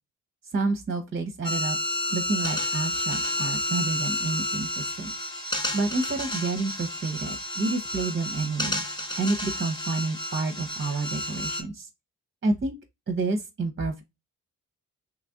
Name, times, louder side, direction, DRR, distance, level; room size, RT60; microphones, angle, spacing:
voice 1, 0.5-1.8 2.1-5.1 5.7-8.8 9.2-11.9 12.4-12.7 13.1-14.0, right 3 dB, 25° right, 0.7 m, -29 dB
sound 1, 1.4-11.6, left 1 dB, 10° left, 0.7 m, -31 dB
3.0 x 2.5 x 3.4 m
hypercardioid pair, 40°, 44 cm